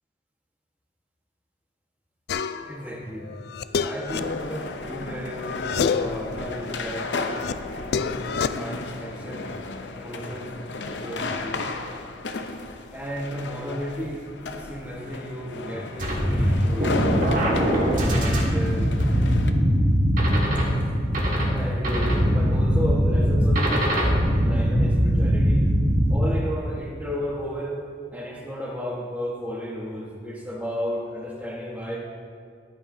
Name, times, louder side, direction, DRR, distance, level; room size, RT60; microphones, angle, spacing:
sound 1, 2.3-2.8 3.2-5.1 5.4-6.2 6.7-8.5, left 6 dB, 60° left, 0.3 m, -28 dB
voice 1, 2.6-3.3 3.8-7.1 7.7-9.5 9.9-10.5 11.0-11.6 12.9-14.2 14.5-17.6 18.1-18.9 20.5-20.9 21.5-24.1 24.4-25.6 26.1-27.8 28.1-32.0, equal, 10° right, -3 dB, 1.3 m, -33 dB
sound 2, 4.1-19.5, left 3 dB, 80° left, 0.7 m, -34 dB
sound 3, 16.0-26.2, equal, 50° right, 1.7 m, -21 dB
13.5 x 8.7 x 2.7 m, 2.2 s
head